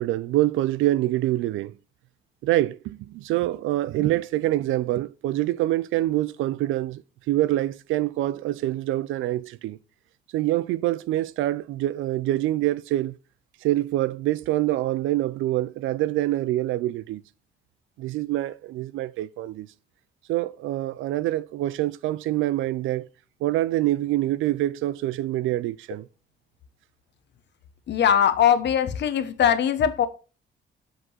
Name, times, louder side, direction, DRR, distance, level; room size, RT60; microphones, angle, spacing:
voice 1, 0.0-1.7 2.4-7.0 7.3-9.8 10.3-13.2 13.6-17.2 18.0-19.7 20.3-23.1 23.4-26.1, right 15 dB, 85° right, 0.5 m, -25 dB
voice 2, 27.9-30.1, left 9 dB, 65° left, 0.9 m, -21 dB
7.8 x 3.8 x 6.2 m
cardioid pair, 90°, 20 cm